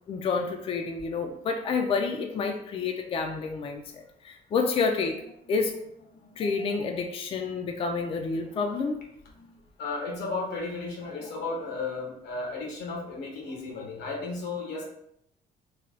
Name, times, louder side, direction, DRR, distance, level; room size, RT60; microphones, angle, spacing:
voice 1, 0.1-5.2 5.5-5.8 6.4-9.1, left 4 dB, 35° left, 4 dB, 0.4 m, -29 dB
voice 2, 9.8-14.9, left 3 dB, 85° left, -1 dB, 1.1 m, -34 dB
3.3 x 2.2 x 3.8 m, 0.75 s
cardioid pair, 110°, 17 cm